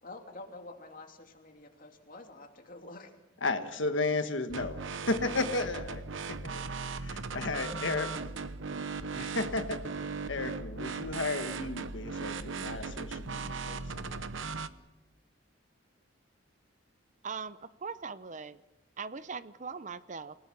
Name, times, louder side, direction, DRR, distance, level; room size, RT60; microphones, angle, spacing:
voice 1, 0.0-3.1 7.3-7.8, left 2 dB, 45° left, 3 dB, 2.8 m, -48 dB
voice 2, 3.4-6.0 6.3-6.4 6.8-8.3 9.1-9.8 10.3-14.3, left 3 dB, 70° left, 8 dB, 1.5 m, -34 dB
sound 1, 4.5-14.7, right 4 dB, 75° right, 0.9 m, -38 dB
voice 3, 17.2-18.6 19.0-20.4, right 5 dB, 40° right, 15 dB, 0.6 m, -40 dB
29.0 x 18.0 x 6.0 m, 1.0 s
head